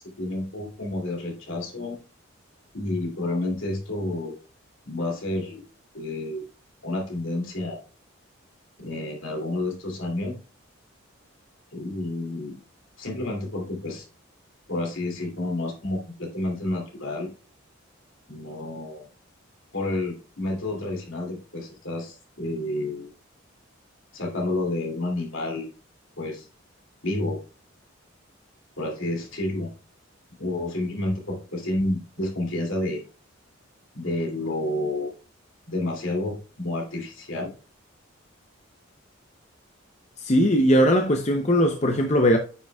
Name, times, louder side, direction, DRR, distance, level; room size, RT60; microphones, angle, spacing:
voice 1, 0.0-1.9 2.7-4.3 4.9-5.6 5.9-6.5 6.8-7.8 8.8-10.3 11.7-12.5 13.0-14.0 14.7-17.3 18.3-19.0 19.7-23.1 24.1-25.7 26.2-26.5 27.0-27.4 28.8-29.7 30.4-33.0 33.9-35.1 35.7-37.5, left 2 dB, 70° left, 2.7 m, -30 dB
voice 2, 40.2-42.4, equal, 35° left, 0.6 m, -19 dB
9.1 x 5.8 x 2.3 m
head